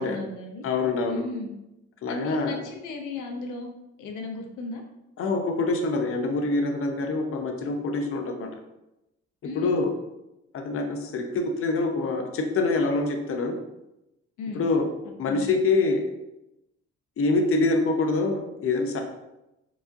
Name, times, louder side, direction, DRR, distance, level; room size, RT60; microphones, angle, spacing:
voice 1, 0.0-0.6 1.1-1.5 2.1-3.7 4.0-4.8 9.4-9.8 14.4-14.6 15.3-15.4, left 3 dB, 85° left, 3 dB, 0.6 m, -35 dB
voice 2, 0.6-1.2 2.0-2.6 5.2-8.5 9.5-9.9 10.5-13.6 14.5-14.9 15.2-16.0 17.2-19.0, left 3 dB, 45° left, 3 dB, 0.6 m, -25 dB
4.7 x 2.5 x 2.5 m, 0.92 s
cardioid pair, 90°, 30 cm